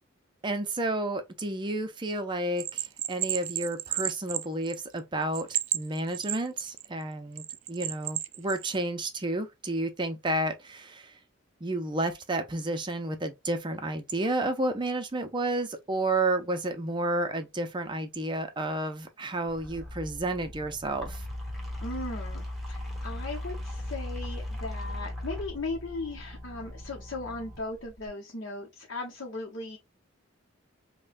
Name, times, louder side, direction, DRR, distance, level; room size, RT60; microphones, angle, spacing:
voice 1, 0.4-11.2 11.6-21.3, right 2 dB, 25° right, 0.5 m, -31 dB
Bell, 2.6-5.0 5.3-6.9 7.4-8.7, right 14 dB, 80° right, 0.4 m, -32 dB
sound 1, 19.5-28.1, left 1 dB, ahead, 1.1 m, -38 dB
voice 2, 21.8-29.8, left 2 dB, 65° left, 0.9 m, -37 dB
5.3 x 2.2 x 2.5 m
head